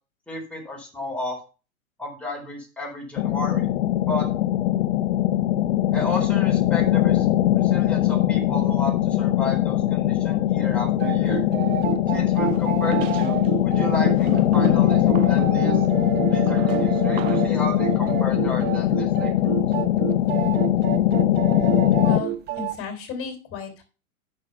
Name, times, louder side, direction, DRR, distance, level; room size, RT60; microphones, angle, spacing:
voice 1, 0.3-1.4 2.0-3.7 4.1-4.3 5.9-7.3 7.5-11.4 12.1-15.8 16.3-19.6, left 2 dB, 5° left, -3 dB, 4.0 m, -33 dB
sound 1, 3.2-22.2, left 13 dB, 60° left, 0.6 m, -21 dB
sound 2, 11.0-22.7, right 13 dB, 25° right, 0.6 m, -29 dB
sound 3, 12.5-13.5 14.2-17.6, right 9 dB, 60° right, 0.9 m, -37 dB
voice 2, 22.0-23.8, left 7 dB, 30° left, 5 dB, 3.4 m, -34 dB
8.2 x 6.5 x 5.7 m, 0.34 s
hypercardioid pair, 115°, 42 cm